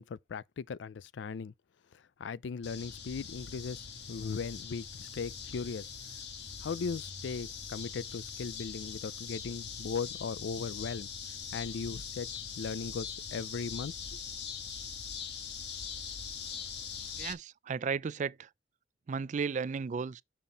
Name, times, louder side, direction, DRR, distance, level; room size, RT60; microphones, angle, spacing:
voice 1, 0.0-1.5 2.2-5.9 6.6-11.1 11.5-12.3 12.6-14.2, left 5 dB, 85° left, 0.4 m, -38 dB
sound 1, 2.6-17.3, left 6 dB, 65° left, 1.5 m, -42 dB
voice 2, 17.2-18.5 19.1-20.2, right 5 dB, 45° right, 0.3 m, -34 dB
7.1 x 5.5 x 4.1 m
head